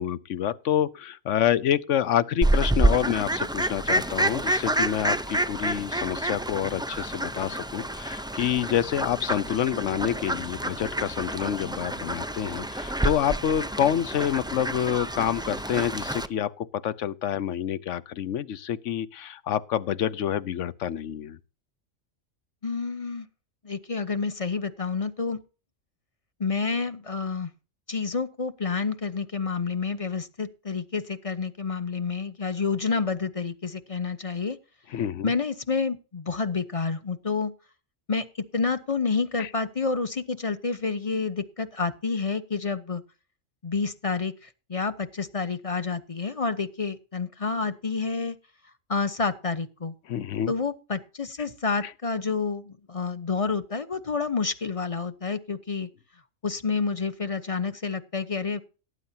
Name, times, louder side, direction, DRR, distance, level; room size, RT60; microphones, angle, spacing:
voice 1, 0.0-21.4 34.9-35.3 39.4-39.5 50.1-50.5 51.8-51.9, left 10 dB, 75° left, 1.1 m, -27 dB
Fowl, 2.4-16.3, right 1 dB, 5° right, 0.4 m, -28 dB
voice 2, 22.6-23.3 23.6-25.4 26.4-27.5 27.9-34.6 35.2-37.5 38.1-38.2 38.5-43.0 43.6-48.4 48.9-49.9 50.5-55.9 56.4-58.6, left 4 dB, 30° left, 0.9 m, -29 dB
18.0 x 9.7 x 2.8 m
omnidirectional pair, 1.3 m